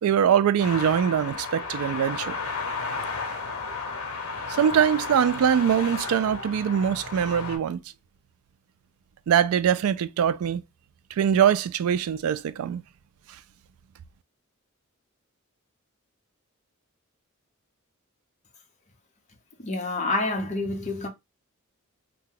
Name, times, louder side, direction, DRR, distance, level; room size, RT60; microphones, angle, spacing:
voice 1, 0.0-2.4 4.5-7.8 9.3-10.6 11.2-12.8, right 8 dB, 80° right, 0.3 m, -23 dB
sound 1, 0.6-7.6, left 4 dB, 85° left, 1.0 m, -33 dB
voice 2, 19.6-21.1, left 2 dB, 35° left, 0.8 m, -28 dB
2.7 x 2.2 x 3.7 m
head